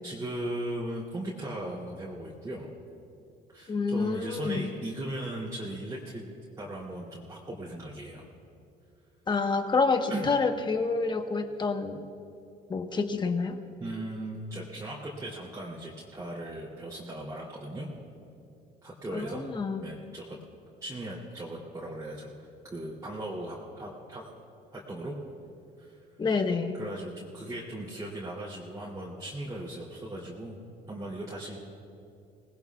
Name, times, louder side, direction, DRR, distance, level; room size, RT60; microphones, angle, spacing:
voice 1, 0.0-2.6 3.5-6.2 6.6-8.2 10.1-10.3 13.8-17.9 18.8-19.4 19.8-20.4 20.8-24.3 24.7-25.1 25.8-26.0 26.8-30.6 30.9-31.6, right 1 dB, 20° right, -6 dB, 3.0 m, -38 dB
voice 2, 3.7-4.7 9.3-12.0 12.7-13.6 19.1-19.8 26.2-26.8, left 4 dB, 25° left, 6 dB, 1.2 m, -28 dB
26.5 x 19.5 x 2.4 m, 2.6 s
cardioid pair, 110°, 17 cm